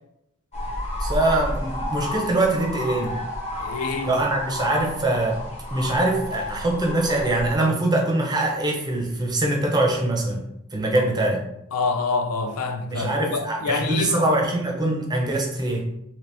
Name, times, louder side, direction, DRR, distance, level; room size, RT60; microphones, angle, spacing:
sound 1, 0.5-7.5, left 1 dB, 30° left, 1.3 m, -31 dB
voice 1, 1.0-3.2 4.0-5.4 5.7-10.4 10.7-11.4 12.9-15.9, right 2 dB, 20° right, 0.5 m, -23 dB
voice 2, 3.6-4.2 11.0-11.1 11.7-14.3, left 4 dB, 70° left, 0.4 m, -27 dB
2.8 x 2.8 x 3.3 m
head